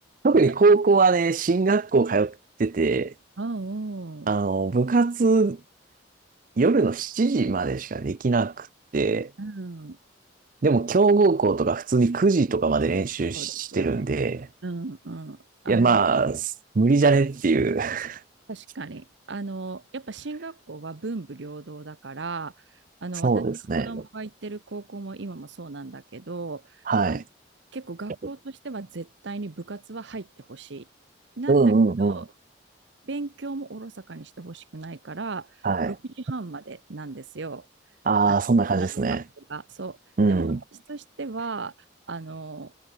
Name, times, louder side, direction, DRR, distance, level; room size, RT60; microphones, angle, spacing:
voice 1, 0.2-2.3 2.6-3.1 4.3-5.6 6.6-8.7 8.9-9.3 10.6-14.5 15.7-18.2 23.2-23.9 26.9-27.2 31.5-32.2 35.6-35.9 38.1-39.2 40.2-40.6, right 4 dB, 45° right, 0.5 m, -21 dB
voice 2, 3.4-4.3 9.4-10.0 13.3-14.1 14.6-16.0 18.5-22.5 23.0-23.4 23.8-27.2 27.7-30.9 31.4-31.7 32.1-32.3 33.0-35.6 35.8-37.7 38.7-40.0 40.3-40.5 40.9-41.7 42.1-42.7, right 3 dB, 65° right, 0.9 m, -36 dB
head